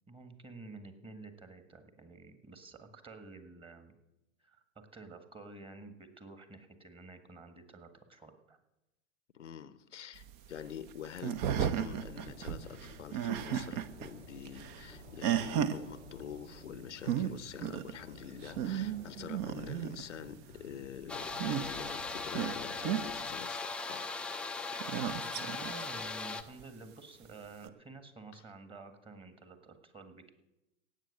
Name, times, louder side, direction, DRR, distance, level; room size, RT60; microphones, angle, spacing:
voice 1, 0.1-3.9 4.4-8.6 25.4-30.3, right 3 dB, 15° right, 1.6 m, -50 dB
voice 2, 9.3-24.1 28.3-28.4, left 9 dB, 70° left, 0.8 m, -46 dB
sound 1, 10.2-14.1 14.4-15.8 16.7-16.8 17.0-17.3 17.6-17.9 18.3-20.1 21.2-21.9 22.3-23.0 24.7-25.8 26.6-26.7 27.6-27.7, right 9 dB, 40° right, 0.9 m, -34 dB
sound 2, 11.5-23.3, left 1 dB, 85° right, 6.3 m, -53 dB
sound 3, 21.1-26.4, left 3 dB, 5° left, 0.5 m, -39 dB
17.5 x 8.0 x 6.6 m
figure-of-eight pair, 100°, 38 cm